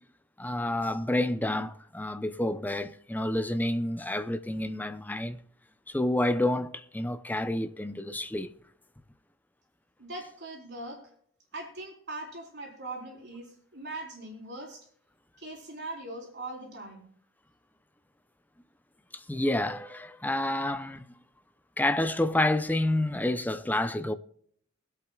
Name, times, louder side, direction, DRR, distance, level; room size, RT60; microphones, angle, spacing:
voice 1, 0.4-5.4 5.9-8.5 19.1-21.1 21.8-24.1, left 1 dB, 10° left, 0.6 m, -29 dB
voice 2, 10.0-11.0 11.5-14.9 15.4-17.0, right 2 dB, 55° right, 3.9 m, -41 dB
23.0 x 8.4 x 2.3 m
head